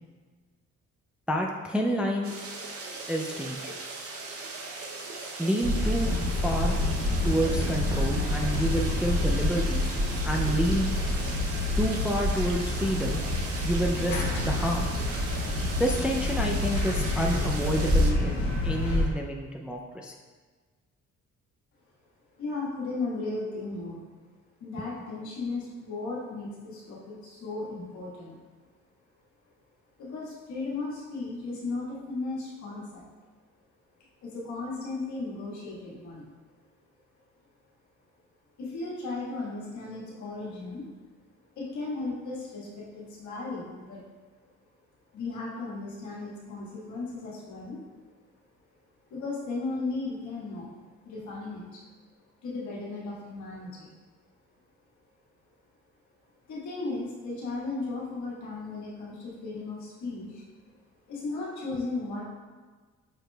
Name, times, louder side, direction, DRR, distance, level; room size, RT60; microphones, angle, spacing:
voice 1, 1.3-2.4 3.1-3.8 5.4-6.8 7.2-9.8 10.3-10.9 11.8-13.2 13.6-14.9 15.8-20.1, equal, 5° right, 0 dB, 0.3 m, -29 dB
sound 1, 2.2-18.1, right 3 dB, 50° right, 0.7 m, -39 dB
sound 2, 5.6-19.1, left 1 dB, 90° left, 1.2 m, -27 dB
voice 2, 22.3-24.0 24.6-28.4 30.0-33.0 34.2-36.2 38.6-40.8 41.6-44.0 45.1-47.8 49.1-51.8 52.4-53.9 56.5-60.4 61.1-62.2, left 3 dB, 70° left, -5 dB, 1.5 m, -35 dB
6.5 x 2.9 x 2.2 m, 1.4 s
cardioid pair, 90°, 30 cm